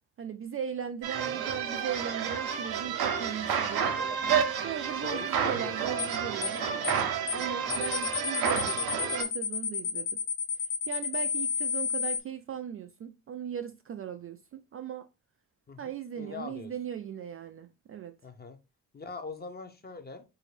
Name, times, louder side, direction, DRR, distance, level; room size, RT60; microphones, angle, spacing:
voice 1, 0.2-3.9 4.6-6.6 7.3-10.2 10.5-15.1 15.8-18.1, right 8 dB, 35° right, 0.4 m, -38 dB
sound 1, 1.0-9.2, right 7 dB, 65° right, 0.8 m, -30 dB
voice 2, 5.0-7.1 7.7-7.9 15.7-16.7 18.2-18.6 18.9-20.2, left 4 dB, 25° left, 0.8 m, -43 dB
sound 2, 6.0-6.2 6.4-6.6 6.8-7.0 7.3-7.4 7.7-12.2, left 7 dB, 80° left, 0.6 m, -31 dB
4.0 x 2.7 x 3.2 m
hypercardioid pair, 45°, 41 cm